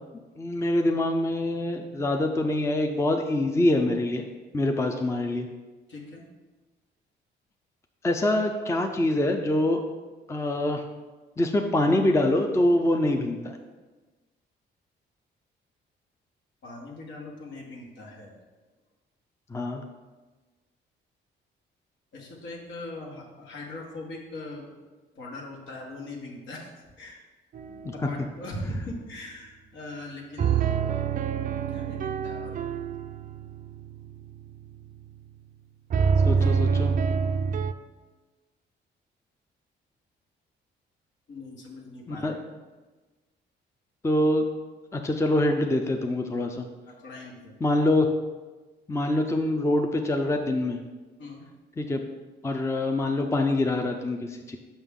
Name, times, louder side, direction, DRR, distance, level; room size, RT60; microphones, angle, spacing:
voice 1, 0.4-4.3 4.5-5.5 8.0-9.8 10.3-10.8 11.4-13.6 19.5-19.8 27.8-27.9 36.3-36.9 42.1-42.4 44.0-44.5 44.9-46.7 47.6-48.1 48.9-50.8 51.8-52.0 52.4-54.6, left 1 dB, 15° left, 4 dB, 0.5 m, -25 dB
voice 2, 5.9-6.2 16.6-18.3 22.1-24.7 25.1-26.7 27.0-27.2 27.7-30.9 31.3-32.6 41.3-42.4 46.9-47.5 51.2-51.5, left 2 dB, 70° left, -1 dB, 1.5 m, -40 dB
sound 1, 27.5-28.1 30.4-35.2 35.9-37.7, right 6 dB, 45° right, 0.4 m, -27 dB
6.0 x 5.5 x 3.7 m, 1.2 s
cardioid pair, 90°, 20 cm